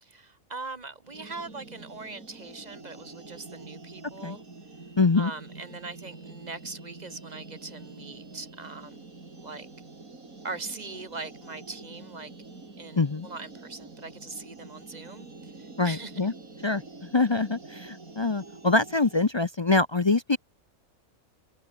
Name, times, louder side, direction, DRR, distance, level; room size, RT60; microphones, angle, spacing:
voice 1, 0.0-4.4 5.2-9.1 9.4-9.7 10.4-12.3 12.8-16.3, right 3 dB, 30° right, 1.8 m, -41 dB
sound 1, 1.1-19.3, right 3 dB, 80° right, 4.3 m, -46 dB
voice 2, 5.0-5.3 13.0-13.3 15.8-16.3 16.6-16.8 17.1-20.4, left 3 dB, 35° left, 0.4 m, -24 dB
omnidirectional pair, 1.5 m